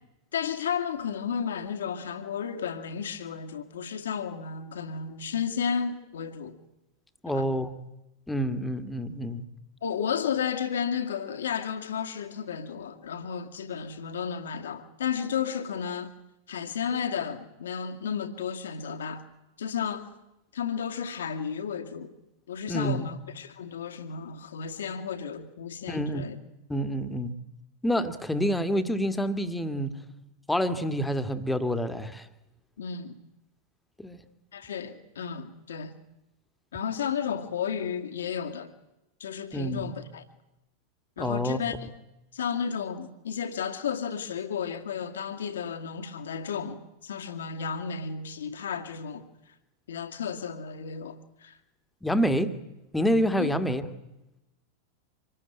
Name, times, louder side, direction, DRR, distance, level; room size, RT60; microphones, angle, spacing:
voice 1, 0.3-6.6 7.3-7.5 9.8-16.1 16.5-19.2 19.6-20.1 20.5-22.1 22.5-26.4 32.8-33.2 34.5-35.9 36.7-38.7 39.2-40.2 41.2-41.9 42.3-49.3 49.9-51.6 53.4-53.6, left 7 dB, 65° left, 2.2 m, -33 dB
voice 2, 7.2-7.7 8.3-9.4 22.7-23.1 25.9-26.3 26.7-27.3 27.8-29.9 30.5-32.3 34.0-34.2 39.5-39.9 41.2-41.6 52.0-52.6 52.9-53.8, equal, 5° left, 1.8 m, -27 dB
26.0 x 20.0 x 9.2 m
figure-of-eight pair, 90°, 0 cm